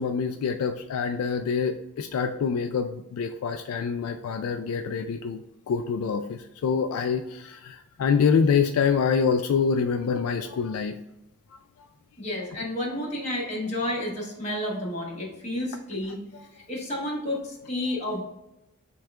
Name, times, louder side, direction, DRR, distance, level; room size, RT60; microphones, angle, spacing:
voice 1, 0.0-5.4 5.7-11.0 16.3-16.4, left 6 dB, 70° left, 7 dB, 0.3 m, -26 dB
voice 2, 12.2-16.2 16.7-18.2, left 1 dB, 30° left, -4 dB, 1.4 m, -31 dB
6.3 x 2.3 x 3.4 m, 0.92 s
head